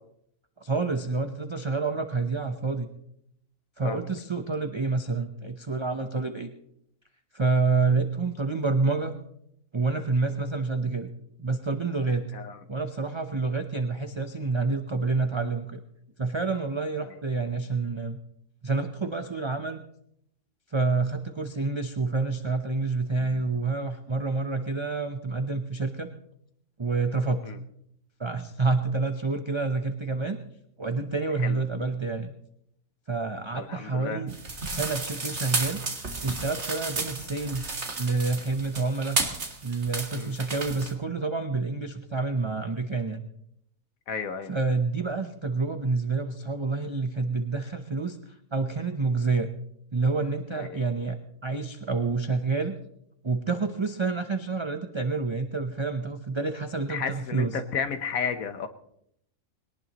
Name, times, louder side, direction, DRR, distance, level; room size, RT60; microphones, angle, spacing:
voice 1, 0.6-2.9 3.8-6.5 7.3-9.1 9.7-11.1 11.4-12.3 12.7-15.8 16.2-18.2 18.6-19.8 20.7-26.1 26.8-27.4 28.2-30.4 30.8-32.3 33.1-34.3 34.7-35.8 36.2-39.2 39.6-43.2 44.5-49.5 49.9-52.7 53.2-57.5, right 3 dB, 25° right, 6 dB, 0.7 m, -28 dB
voice 2, 33.5-34.2 40.1-40.3 44.1-44.5 50.5-50.8 56.9-58.7, left 6 dB, 80° left, 8 dB, 1.5 m, -33 dB
sound 1, 34.3-40.9, right 3 dB, 55° right, 2.1 m, -33 dB
21.5 x 18.5 x 3.0 m, 0.74 s
omnidirectional pair, 1.4 m